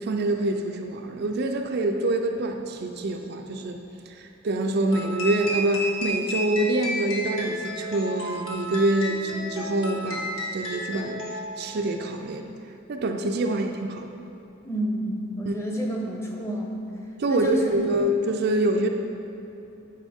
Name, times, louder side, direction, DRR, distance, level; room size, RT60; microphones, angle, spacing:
voice 1, 0.0-12.5 12.9-14.1 15.5-15.6 17.2-18.9, right 1 dB, 55° right, 3 dB, 0.4 m, -26 dB
sound 1, 4.9-11.7, equal, 85° left, 1.5 m, -32 dB
voice 2, 14.6-16.8 17.3-17.9, equal, 15° left, -1 dB, 0.9 m, -29 dB
9.1 x 6.0 x 3.6 m, 2.9 s
head